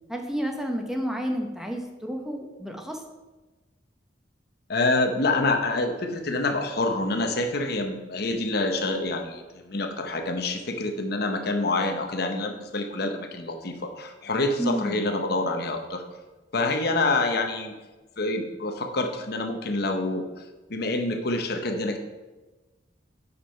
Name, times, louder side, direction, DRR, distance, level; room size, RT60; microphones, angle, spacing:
voice 1, 0.1-3.0 14.6-15.0, equal, ahead, 2 dB, 0.9 m, -30 dB
voice 2, 4.7-16.0 16.5-17.7 18.2-20.4 20.7-22.0, left 2 dB, 60° left, 5 dB, 1.0 m, -27 dB
10.5 x 5.6 x 4.5 m, 1.2 s
head